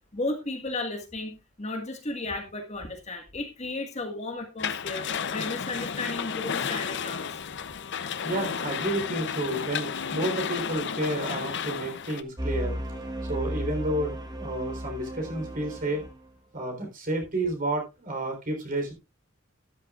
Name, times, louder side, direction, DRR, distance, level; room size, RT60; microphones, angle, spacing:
voice 1, 0.1-7.4, left 2 dB, 35° left, 4 dB, 1.7 m, -34 dB
sound 1, 4.6-12.2, left 6 dB, 55° left, 0.7 m, -32 dB
voice 2, 8.2-12.8 13.3-16.0 16.5-18.9, right 1 dB, 40° right, 3 dB, 3.7 m, -30 dB
sound 2, 12.4-16.3, equal, 20° right, 1.3 m, -34 dB
12.5 x 11.0 x 2.4 m, 0.25 s
head